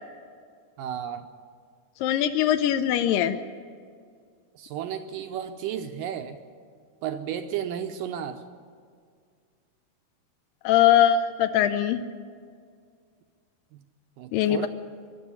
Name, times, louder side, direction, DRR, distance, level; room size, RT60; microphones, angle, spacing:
voice 1, 0.8-1.3 4.6-6.4 7.0-8.4 13.7-13.8 14.2-14.7, right 9 dB, 80° right, 7 dB, 2.0 m, -33 dB
voice 2, 2.0-3.4 10.6-12.0 14.3-14.7, left 10 dB, 85° left, 8 dB, 2.0 m, -21 dB
22.0 x 12.5 x 9.9 m, 2.1 s
omnidirectional pair, 4.7 m